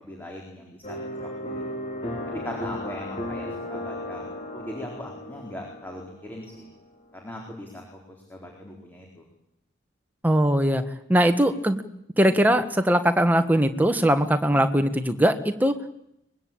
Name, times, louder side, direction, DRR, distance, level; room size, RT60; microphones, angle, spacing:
voice 1, 0.0-1.8 2.3-6.7 7.1-7.8 8.1-9.3, left 1 dB, 10° left, 0 dB, 4.2 m, -40 dB
sound 1, 0.8-6.0, left 1 dB, 35° left, 4.5 m, -34 dB
voice 2, 10.2-10.8 11.1-11.8 12.2-15.7, right 1 dB, 10° right, 7 dB, 1.5 m, -20 dB
24.0 x 21.5 x 8.9 m, 0.80 s
head